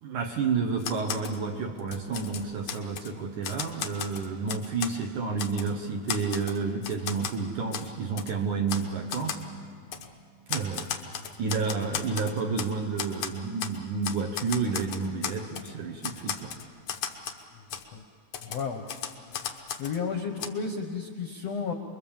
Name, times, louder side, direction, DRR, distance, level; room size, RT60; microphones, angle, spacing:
voice 1, 0.0-9.4 10.5-10.9 11.4-16.5, right 5 dB, 65° right, 3 dB, 2.1 m, -30 dB
Typewriter, 0.8-1.4 1.8-3.1 3.4-5.0 5.4-5.7 6.1-7.4 7.7-7.9 8.2-8.3 8.7-8.8 9.1-9.4 9.9-10.1 10.5-12.7 13.0-13.8 14.0-15.7 16.0-17.4 17.7-17.8 18.3-20.0 20.4-20.5, left 8 dB, 90° left, 1.3 m, -35 dB
voice 2, 17.7-18.0 18.4-18.8 19.8-21.7, left 5 dB, 70° left, 4 dB, 1.5 m, -33 dB
27.0 x 22.5 x 7.3 m, 2.1 s
omnidirectional pair, 4.7 m